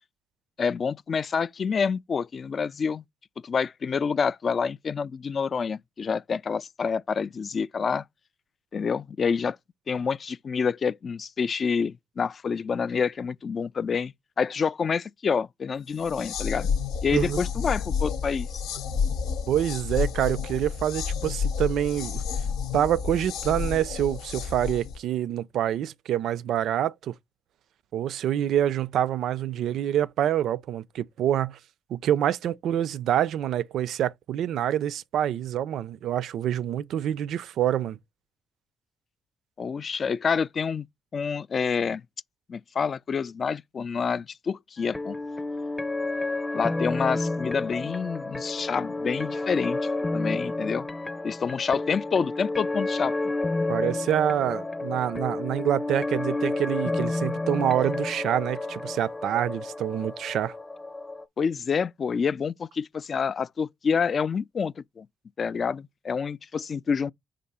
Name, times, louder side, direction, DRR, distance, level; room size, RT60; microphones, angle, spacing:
voice 1, 0.6-3.0 3.4-8.0 8.7-9.6 9.9-16.7 17.0-18.6 39.6-40.9 41.1-42.0 42.5-45.2 46.5-50.9 51.2-53.3 61.4-65.1 65.4-67.1, left 6 dB, 45° left, 0.3 m, -28 dB
sound 1, 15.9-25.0, left 6 dB, 90° left, 0.8 m, -30 dB
voice 2, 17.1-17.4 19.5-22.2 22.7-27.1 27.9-31.6 31.9-38.0 53.7-60.5, right 11 dB, 75° right, 0.4 m, -26 dB
sound 2, 44.8-61.2, left 2 dB, 20° left, 0.7 m, -30 dB
5.1 x 3.7 x 5.5 m
cardioid pair, 90°, 0 cm